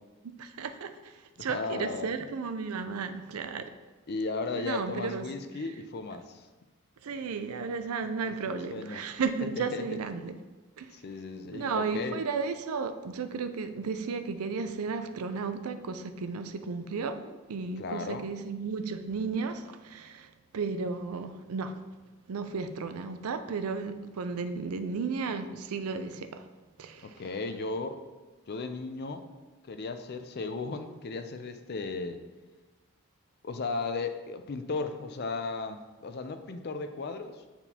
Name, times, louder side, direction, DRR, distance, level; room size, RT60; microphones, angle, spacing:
voice 1, 0.2-3.7 4.6-5.3 7.0-10.3 10.8-10.9 11.5-21.7 22.3-26.5 26.8-27.2, right 5 dB, 85° right, 9 dB, 0.5 m, -34 dB
voice 2, 1.4-2.2 4.1-6.4 8.2-8.3 8.7-9.1 9.6-10.0 10.9-12.2 17.8-18.3 27.0-28.0 28.5-29.3 29.6-32.2 33.4-37.4, left 3 dB, 45° left, 8 dB, 0.5 m, -35 dB
8.9 x 4.3 x 2.8 m, 1.2 s
head